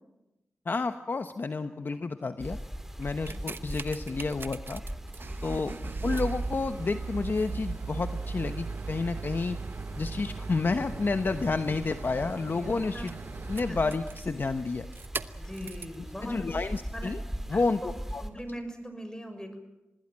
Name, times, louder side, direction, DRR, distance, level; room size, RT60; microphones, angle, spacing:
voice 1, 0.7-2.6 3.0-4.8 5.4-5.8 6.0-9.6 10.0-13.1 13.5-14.9 16.2-17.2 17.5-18.2, left 3 dB, 50° left, 9 dB, 1.1 m, -30 dB
sound 1, 2.4-18.3, right 1 dB, 10° right, 2.9 m, -41 dB
sound 2, 3.0-16.0 16.7-16.8, right 4 dB, 55° right, 1.0 m, -38 dB
voice 2, 12.5-13.1 13.7-13.8 15.4-16.6 16.9-17.1 17.5-17.9 18.2-19.6, equal, 15° left, 7 dB, 6.8 m, -41 dB
26.0 x 20.0 x 7.6 m, 0.96 s
cardioid pair, 60°, 5 cm